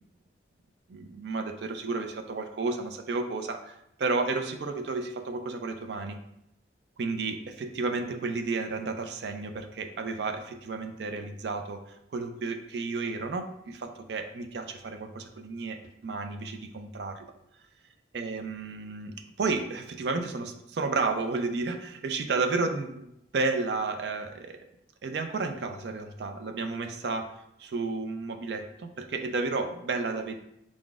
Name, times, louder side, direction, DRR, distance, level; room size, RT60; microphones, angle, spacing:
voice 1, 0.9-6.2 7.0-17.3 18.1-24.6 25.0-30.4, right 3 dB, 65° right, 6 dB, 0.4 m, -32 dB
3.8 x 3.6 x 2.4 m, 0.80 s
head